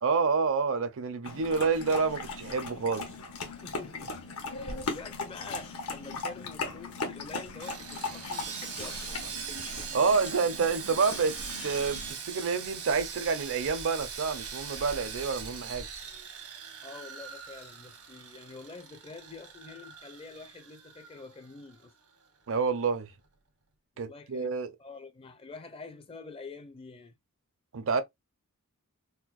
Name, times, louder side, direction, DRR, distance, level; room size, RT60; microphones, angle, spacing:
voice 1, 0.0-3.1 9.9-15.9 22.5-23.1 24.0-24.7 27.7-28.0, right 5 dB, 65° right, 0.6 m, -28 dB
sound 1, 1.2-12.1, left 3 dB, 75° left, 1.0 m, -38 dB
voice 2, 3.5-4.2 4.5-9.2 16.8-21.9 24.0-24.5 24.8-27.2, left 4 dB, 25° left, 0.5 m, -47 dB
Sawing, 7.6-21.9 22.1-22.3 22.8-22.9, right 6 dB, 80° right, 1.1 m, -41 dB
4.3 x 2.1 x 2.4 m
head